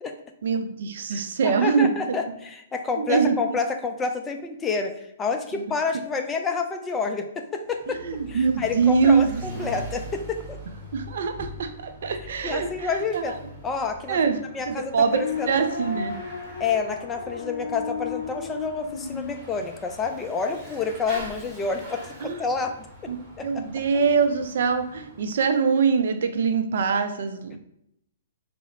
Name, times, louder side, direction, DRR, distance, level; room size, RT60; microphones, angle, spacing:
voice 1, 0.4-1.9 3.0-3.4 7.9-9.7 10.9-13.2 14.1-14.4 14.7-15.2 15.5-16.1 22.2-22.4 23.1-23.2 23.4-27.6, right 5 dB, 60° right, 7 dB, 0.4 m, -23 dB
voice 2, 1.1-8.0 8.3-10.6 12.4-13.4 13.6-14.2 14.5-15.6 16.6-22.7 23.4-23.6, left 4 dB, 15° left, 5 dB, 0.4 m, -29 dB
Bicycle / Mechanisms, 7.7-25.3, equal, 15° right, 1.1 m, -42 dB
sound 1, 14.9-19.3, left 5 dB, 70° left, 0.5 m, -34 dB
3.6 x 2.0 x 3.0 m, 0.78 s
figure-of-eight pair, 120°, 0 cm